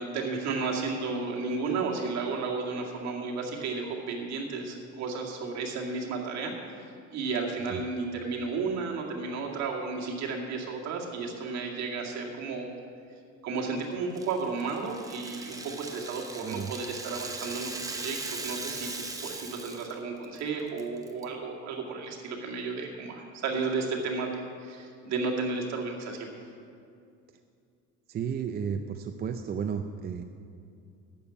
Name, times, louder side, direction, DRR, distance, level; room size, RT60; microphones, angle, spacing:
voice 1, 0.0-6.5 7.1-12.8 13.4-26.3, right 4 dB, 55° right, -1 dB, 2.2 m, -33 dB
Rattle (instrument), 14.2-20.0 20.2-20.4 20.8-21.2, right 3 dB, 10° right, 0.9 m, -39 dB
voice 2, 28.1-30.2, right 7 dB, 30° right, 6 dB, 0.5 m, -33 dB
12.0 x 7.0 x 8.3 m, 2.4 s
cardioid pair, 140°, 32 cm